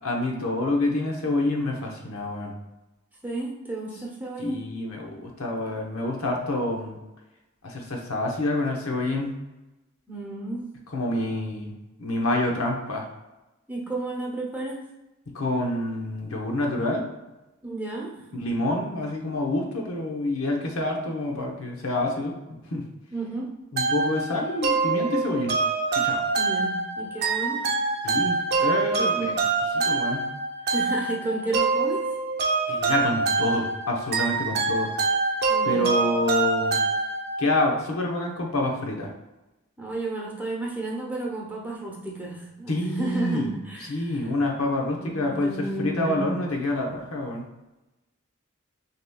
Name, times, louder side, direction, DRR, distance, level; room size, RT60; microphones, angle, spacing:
voice 1, 0.0-2.5 4.4-7.0 7.6-9.4 10.9-13.1 15.3-17.0 18.3-22.9 23.7-25.5 26.0-26.2 28.0-29.3 29.8-30.3 32.7-34.9 35.6-36.8 37.4-39.1 42.7-43.5 43.9-47.4, left 2 dB, 85° left, 1 dB, 0.9 m, -27 dB
voice 2, 3.2-4.6 10.1-10.6 13.7-14.8 17.6-18.3 23.1-23.5 26.4-27.7 29.0-29.3 30.7-32.0 35.5-35.9 39.8-44.2 44.8-46.3, right 2 dB, 10° right, -3 dB, 0.8 m, -32 dB
sound 1, 23.8-37.6, right 4 dB, 50° right, 0.6 m, -25 dB
6.5 x 2.9 x 2.3 m, 1.0 s
head